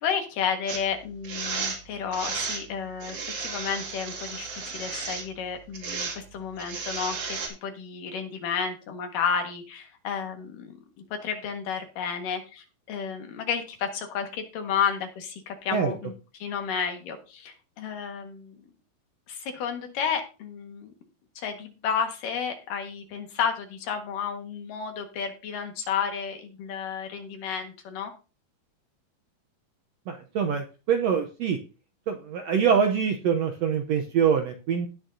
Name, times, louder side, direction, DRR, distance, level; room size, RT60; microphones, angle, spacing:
voice 1, 0.0-10.7 11.2-16.1 16.4-18.6 19.3-20.9 21.4-28.1, left 7 dB, 75° left, 5 dB, 3.1 m, -32 dB
sound 1, 0.7-0.8 1.2-1.8 2.1-2.6 3.0-5.3 5.7-6.2 6.6-7.5, right 4 dB, 45° right, 3.1 m, -33 dB
voice 2, 30.1-31.6 32.1-34.9, right 7 dB, 75° right, 5 dB, 1.5 m, -24 dB
18.0 x 6.3 x 2.7 m, 0.33 s
omnidirectional pair, 3.9 m